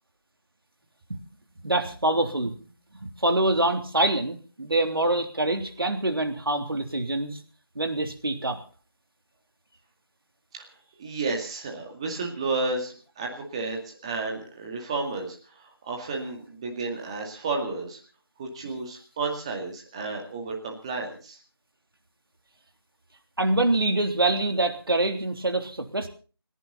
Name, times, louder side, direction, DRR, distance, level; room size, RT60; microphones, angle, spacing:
voice 1, 1.6-2.5 3.0-7.4 7.7-8.6 23.4-26.1, right 2 dB, 65° right, 5 dB, 3.2 m, -25 dB
voice 2, 11.0-18.0 18.4-21.4, right 3 dB, 15° right, 1 dB, 2.1 m, -32 dB
29.5 x 11.0 x 4.2 m, 0.38 s
figure-of-eight pair, 165°, 13 cm